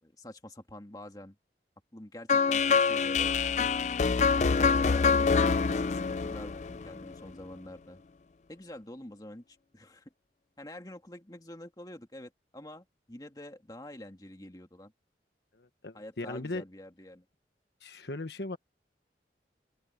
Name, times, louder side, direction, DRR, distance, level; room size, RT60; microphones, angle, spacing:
voice 1, 0.0-1.4 1.9-3.3 4.4-8.0 8.5-10.1 10.6-14.9 15.9-17.3, left 1 dB, 20° left, 2.0 m, -47 dB
sound 1, 2.3-7.3, left 5 dB, 40° left, 0.4 m, -26 dB
voice 2, 15.5-16.6 17.8-18.6, left 2 dB, 70° left, 1.3 m, -38 dB
open air
head